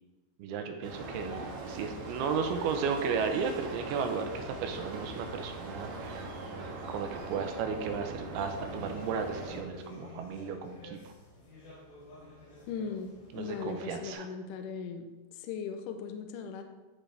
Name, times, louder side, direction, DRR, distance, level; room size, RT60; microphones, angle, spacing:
voice 1, 0.4-6.2 6.5-11.1 13.3-14.3, right 5 dB, 85° right, 5 dB, 2.8 m, -34 dB
sound 1, 0.8-9.6, right 2 dB, 70° right, 2.6 m, -41 dB
sound 2, 8.3-14.1, left 1 dB, 60° left, 4.5 m, -50 dB
voice 2, 12.7-16.6, left 6 dB, 80° left, 6 dB, 1.9 m, -39 dB
12.5 x 5.0 x 3.3 m, 1.2 s
omnidirectional pair, 4.4 m